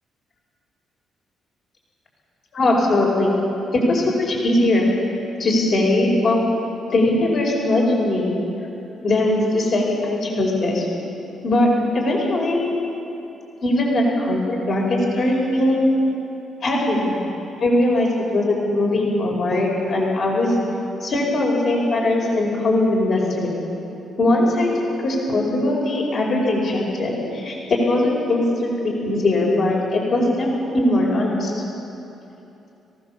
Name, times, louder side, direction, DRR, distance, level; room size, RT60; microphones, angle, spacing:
voice 1, 2.5-3.3 3.7-4.9 5.4-6.4 6.9-8.3 9.0-10.8 11.4-11.7 11.9-12.6 13.6-15.9 16.6-17.1 17.6-20.6 21.0-23.6 24.2-31.5, left 1 dB, 50° left, -2 dB, 5.0 m, -20 dB
25.5 x 16.5 x 7.2 m, 2.9 s
cardioid pair, 90°, 0 cm